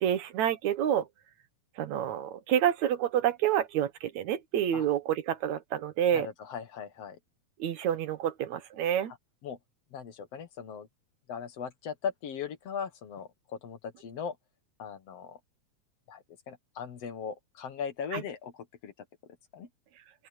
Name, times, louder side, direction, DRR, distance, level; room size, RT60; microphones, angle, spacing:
voice 1, 0.0-1.1 1.8-6.3 7.6-9.1 18.1-18.2, right 10 dB, 75° right, 2.5 m, -28 dB
voice 2, 6.1-7.2 9.4-9.6 9.9-10.9 11.3-14.4 14.8-15.4 16.1-18.9 19.5-19.7, left 7 dB, 60° left, 2.3 m, -39 dB
open air
omnidirectional pair, 3.4 m